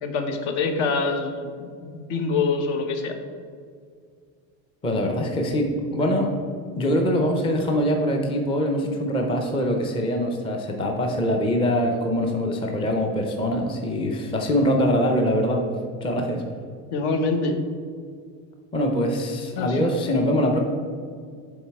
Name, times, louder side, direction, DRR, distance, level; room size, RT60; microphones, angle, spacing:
voice 1, 0.0-3.1 16.9-17.6 19.6-19.8, left 4 dB, 65° left, 6 dB, 1.0 m, -25 dB
voice 2, 4.8-6.3 6.8-15.6 16.0-16.4 18.7-20.6, equal, 15° left, 2 dB, 0.5 m, -23 dB
7.2 x 4.1 x 4.6 m, 2.1 s
cardioid pair, 150°, 44 cm